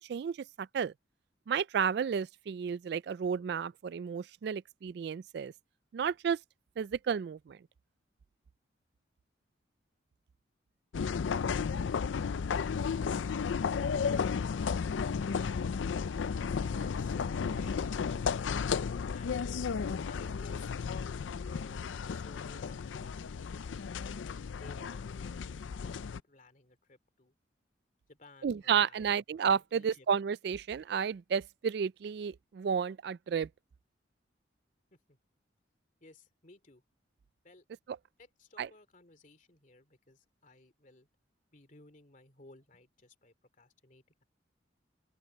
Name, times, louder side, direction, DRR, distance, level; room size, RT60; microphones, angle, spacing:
voice 1, 0.1-0.9 1.5-5.5 5.9-6.4 6.8-7.6 28.4-33.5 38.6-38.7, right 7 dB, 60° right, 0.3 m, -32 dB
sound 1, 10.9-26.2, left 6 dB, 90° left, 0.4 m, -33 dB
voice 2, 16.2-18.3 19.1-19.4 20.0-23.8 24.5-27.3 28.1-29.1 29.7-30.1 34.9-35.2 36.0-36.8 37.4-37.6 38.2-41.1 41.5-44.2, left 2 dB, 45° left, 2.8 m, -58 dB
open air
head